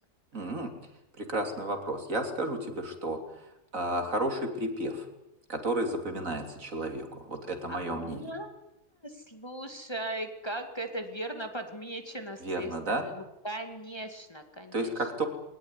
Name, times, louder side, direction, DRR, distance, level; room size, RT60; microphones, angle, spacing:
voice 1, 0.3-0.7 1.2-5.1 5.5-8.2 12.4-13.1 14.7-15.3, right 1 dB, 55° right, 5 dB, 3.5 m, -32 dB
voice 2, 7.7-8.5 9.0-14.9, right 1 dB, 15° left, 6 dB, 2.3 m, -38 dB
22.0 x 19.5 x 9.9 m, 0.87 s
omnidirectional pair, 1.7 m